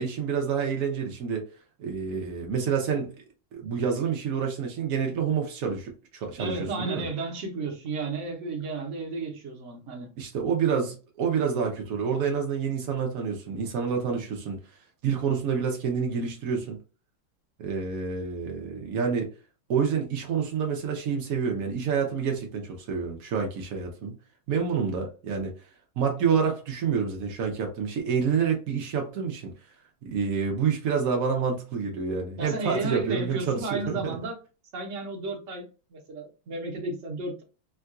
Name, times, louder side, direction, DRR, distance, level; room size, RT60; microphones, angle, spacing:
voice 1, 0.0-1.4 1.8-3.1 3.5-7.1 10.2-14.6 15.0-16.8 17.6-19.3 19.7-24.1 24.5-25.5 26.0-29.5 30.0-34.2, right 6 dB, 85° right, 0.7 m, -28 dB
voice 2, 6.4-10.1 32.4-34.4 34.7-37.4, right 3 dB, 50° right, 0.9 m, -33 dB
3.7 x 2.3 x 2.5 m
omnidirectional pair, 2.3 m